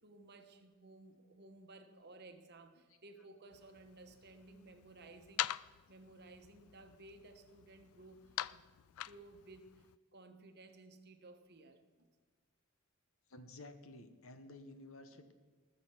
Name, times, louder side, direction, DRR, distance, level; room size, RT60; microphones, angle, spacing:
voice 1, 0.0-5.4 5.9-12.1 15.1-15.3, right 2 dB, 50° right, 6 dB, 1.2 m, -57 dB
sound 1, 3.5-10.0, left 13 dB, 80° left, 0.3 m, -45 dB
voice 2, 13.3-15.3, left 2 dB, 65° left, 9 dB, 1.1 m, -53 dB
19.5 x 6.8 x 5.8 m, 1.3 s
head